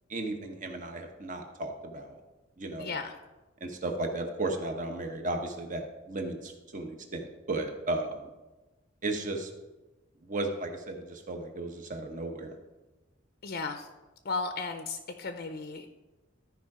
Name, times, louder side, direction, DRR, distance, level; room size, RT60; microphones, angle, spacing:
voice 1, 0.1-2.2 2.6-3.0 3.6-8.2 9.0-9.5 10.3-12.5, right 2 dB, 40° right, 4 dB, 1.1 m, -35 dB
voice 2, 2.8-3.1 13.4-13.9 14.2-15.9, left 4 dB, 50° left, 7 dB, 0.6 m, -35 dB
13.5 x 4.9 x 4.9 m, 1.1 s
head